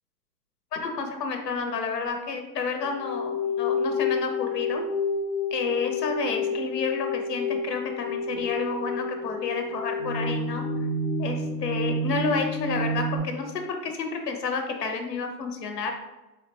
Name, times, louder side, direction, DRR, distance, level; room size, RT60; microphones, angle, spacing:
voice 1, 0.7-4.8 5.5-10.6 11.2-15.9, left 4 dB, 80° left, 4 dB, 0.9 m, -30 dB
sound 1, 2.8-13.2, left 2 dB, 40° left, 0.6 m, -29 dB
3.8 x 2.2 x 4.0 m, 1.0 s
hypercardioid pair, 145°, 48 cm